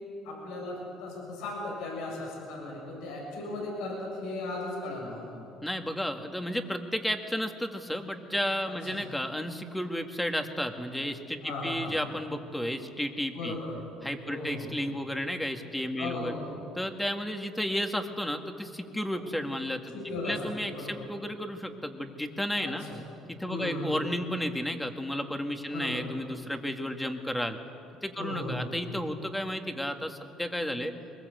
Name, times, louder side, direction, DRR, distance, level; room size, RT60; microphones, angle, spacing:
voice 1, 0.2-5.4 8.7-9.0 11.4-12.0 13.3-13.9 14.3-14.7 16.0-16.7 19.1-19.3 19.9-20.4 20.7-21.0 22.6-23.0 23.5-24.0 25.7-26.1 28.2-28.7, left 2 dB, 80° left, -2 dB, 7.2 m, -37 dB
voice 2, 5.6-13.6 14.0-16.3 16.8-19.9 20.2-22.8 23.3-27.6 28.0-30.9, equal, 5° left, 5 dB, 2.0 m, -32 dB
22.5 x 21.0 x 8.1 m, 2.7 s
supercardioid pair, 90°, 0 cm